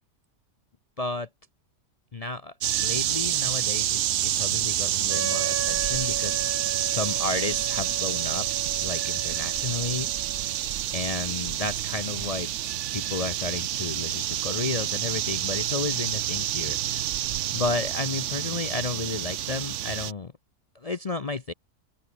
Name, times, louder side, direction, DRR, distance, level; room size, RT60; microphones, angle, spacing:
voice 1, 1.0-1.3 2.1-6.4 6.9-8.5 8.8-10.1 10.9-12.5 12.9-17.1 17.5-20.3 20.7-21.5, left 3 dB, 45° left, 0.5 m, -32 dB
sound 1, 2.6-20.1, right 12 dB, 60° right, 0.8 m, -28 dB
Wind instrument woodwind instrument, 5.1-10.7, right 5 dB, 35° right, 1.3 m, -37 dB
open air
omnidirectional pair, 1.7 m